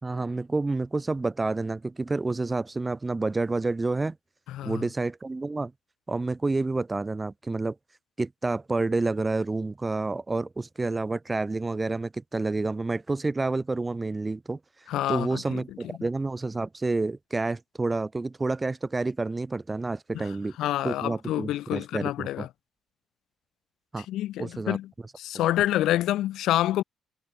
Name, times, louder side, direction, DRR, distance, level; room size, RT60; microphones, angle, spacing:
voice 1, 0.0-4.2 4.6-5.7 6.1-7.7 8.2-14.6 15.1-20.5 20.8-22.5 23.9-24.1 24.4-24.8, right 3 dB, 25° right, 3.0 m, -29 dB
voice 2, 4.5-4.8 14.9-15.6 20.1-20.2 20.6-22.5 24.1-24.9 25.2-26.8, left 13 dB, 75° left, 1.7 m, -27 dB
supercardioid pair, 60°, 0 cm